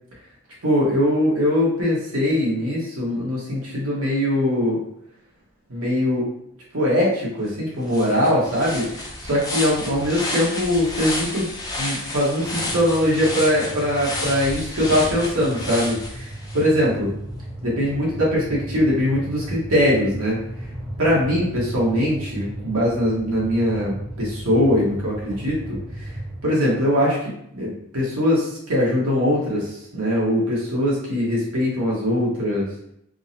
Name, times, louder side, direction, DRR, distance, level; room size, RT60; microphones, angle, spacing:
voice 1, 0.6-4.8 5.7-6.3 6.7-11.5 11.8-17.1 17.6-20.4 21.0-25.8 26.4-32.7, equal, 85° right, -5 dB, 1.1 m, -21 dB
sound 1, 7.5-7.6 7.9-16.6, left 2 dB, 15° left, 0.4 m, -31 dB
sound 2, 12.5-26.4, right 1 dB, 25° right, 0.9 m, -35 dB
3.5 x 2.0 x 2.7 m, 0.73 s
head